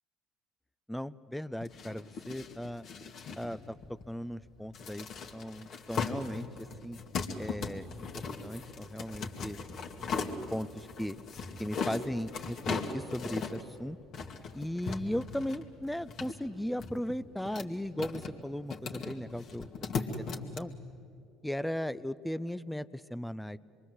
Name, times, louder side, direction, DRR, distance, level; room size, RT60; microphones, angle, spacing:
voice 1, 0.9-2.9 3.4-5.1 5.3-7.0 7.4-7.9 8.1-9.6 10.5-11.2 11.6-14.0 14.5-19.7 20.0-20.7 21.4-23.6, equal, 5° left, 14 dB, 0.6 m, -37 dB
sound 1, 1.6-20.6, left 5 dB, 50° left, 2.2 m, -39 dB
26.0 x 23.0 x 8.2 m, 2.6 s
hypercardioid pair, 70°, 0 cm